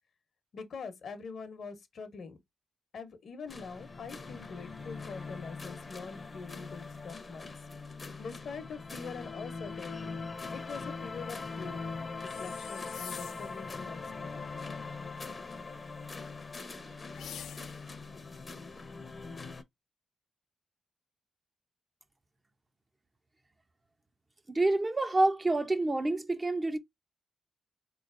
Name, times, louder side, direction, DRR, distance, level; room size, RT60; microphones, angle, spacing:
voice 1, 0.5-2.4 2.9-7.5 8.2-10.2 10.5-11.8 12.2-14.5, left 5 dB, 70° left, 0.8 m, -44 dB
sound 1, 3.5-19.6, left 4 dB, 40° left, 0.6 m, -42 dB
sound 2, 12.2-13.6 17.1-18.0, left 8 dB, 85° left, 0.4 m, -46 dB
voice 2, 24.5-26.8, right 2 dB, 30° right, 0.6 m, -27 dB
3.7 x 3.1 x 2.5 m
cardioid pair, 60°, 0 cm